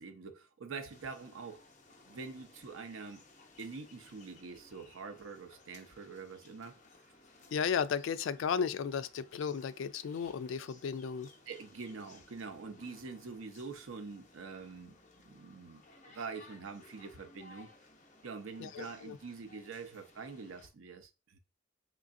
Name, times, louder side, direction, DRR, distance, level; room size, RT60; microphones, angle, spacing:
voice 1, 0.0-1.6 2.1-3.2 3.6-6.8 11.5-15.0 15.2-17.7 18.2-21.4, right 4 dB, 85° right, 0.6 m, -45 dB
sound 1, 0.9-20.7, left 2 dB, 40° left, 0.7 m, -60 dB
voice 2, 7.5-11.3 18.6-19.2, left 7 dB, 70° left, 0.3 m, -34 dB
3.8 x 3.2 x 2.5 m
head